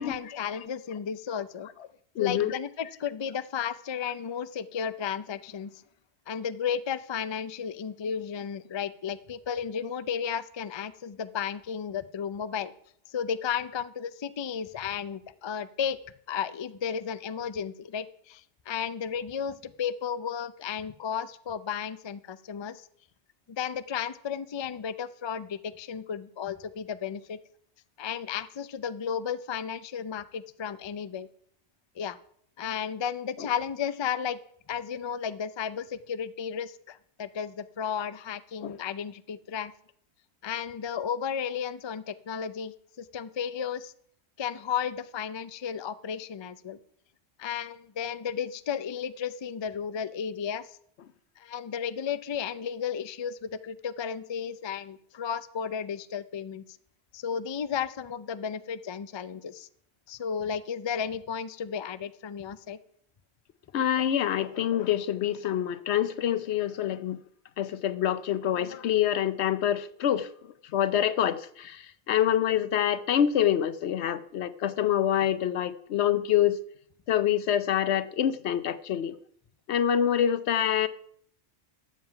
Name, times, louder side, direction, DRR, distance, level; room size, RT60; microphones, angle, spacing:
voice 1, 0.0-1.7 2.2-5.8 6.3-12.7 13.1-16.0 16.3-22.9 23.5-27.4 28.0-31.3 32.0-32.2 32.6-34.4 34.7-39.7 40.4-43.9 44.4-46.8 47.4-50.8 51.4-56.8 57.1-59.7 60.1-62.8, left 7 dB, 45° left, 14 dB, 0.3 m, -33 dB
voice 2, 2.2-2.5 33.4-33.5 38.6-38.7 63.7-67.2 67.6-70.3 70.7-76.6 77.1-79.1 79.7-80.9, left 10 dB, 75° left, 14 dB, 0.9 m, -26 dB
13.0 x 7.6 x 5.7 m, 0.64 s
omnidirectional pair, 1.1 m